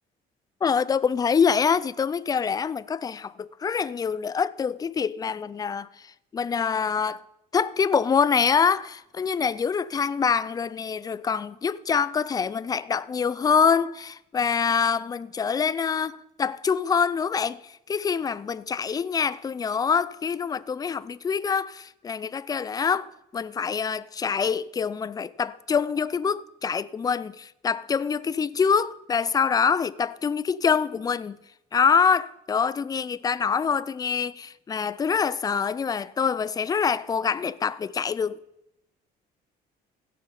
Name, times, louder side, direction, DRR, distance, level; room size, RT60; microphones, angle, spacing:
voice 1, 0.6-5.9 6.3-7.2 7.5-31.4 31.7-38.4, left 6 dB, 20° left, 0.4 m, -25 dB
16.0 x 6.5 x 5.5 m
cardioid pair, 110°, 17 cm